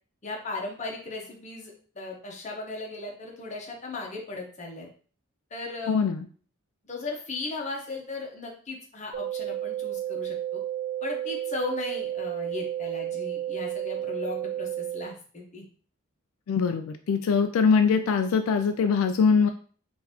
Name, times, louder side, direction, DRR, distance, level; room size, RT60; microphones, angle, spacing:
voice 1, 0.2-4.9 5.5-6.0 6.9-10.6 11.0-15.7, left 3 dB, 35° left, -1 dB, 0.8 m, -37 dB
voice 2, 5.9-6.3 16.5-19.5, left 5 dB, 85° left, 7 dB, 0.3 m, -22 dB
sound 1, 9.1-15.1, right 12 dB, 40° right, 0.4 m, -32 dB
3.8 x 2.6 x 2.7 m, 0.42 s
head